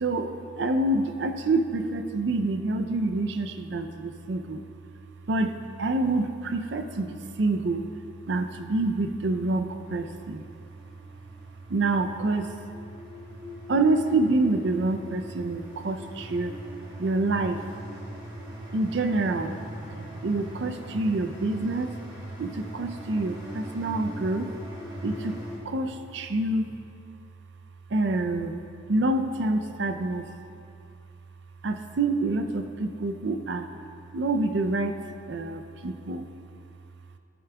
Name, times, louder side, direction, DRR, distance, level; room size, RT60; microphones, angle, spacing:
voice 1, 0.0-4.6 5.3-7.8 8.3-10.4 11.7-12.5 13.7-16.5 17.0-17.6 18.7-19.5 20.2-21.9 22.4-24.5 25.0-25.3 25.7-26.7 27.9-28.6 28.9-30.2 31.6-33.7 34.1-34.9 35.3-36.2, right 2 dB, 65° right, 7 dB, 0.5 m, -27 dB
sound 1, 8.1-25.6, equal, 25° right, 1.6 m, -41 dB
14.5 x 9.3 x 2.3 m, 2.5 s
head